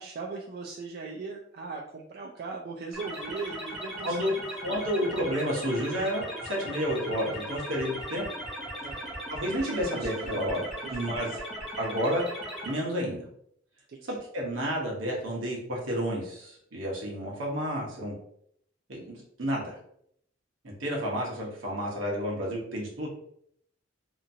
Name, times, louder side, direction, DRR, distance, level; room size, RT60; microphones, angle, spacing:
voice 1, 0.0-4.4 8.8-9.1 9.6-11.3 13.9-14.0, right 4 dB, 50° right, 0 dB, 0.3 m, -40 dB
sound 1, 2.9-12.7, equal, ahead, 0.6 m, -38 dB
voice 2, 4.6-8.3 9.3-10.6 10.9-11.3 11.8-12.3 12.6-13.2 14.1-18.1 18.9-19.7 20.6-23.1, equal, 80° right, -2 dB, 1.0 m, -30 dB
2.9 x 2.5 x 2.6 m, 0.69 s
head